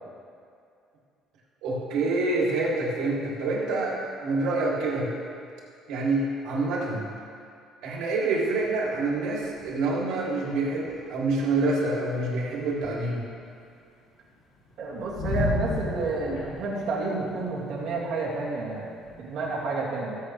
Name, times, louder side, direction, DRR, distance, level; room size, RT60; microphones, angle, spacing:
voice 1, 1.6-5.1 5.9-7.1 7.8-13.3, right 2 dB, 75° right, -5 dB, 3.3 m, -27 dB
sound 1, 8.6-10.0 10.3-10.4 10.6-13.4 14.0-19.5, left 2 dB, 65° left, 3.1 m, -35 dB
voice 2, 14.8-20.2, right 3 dB, 55° right, -5 dB, 2.5 m, -30 dB
21.0 x 8.2 x 3.4 m, 2.3 s
cardioid pair, 165°, 0 cm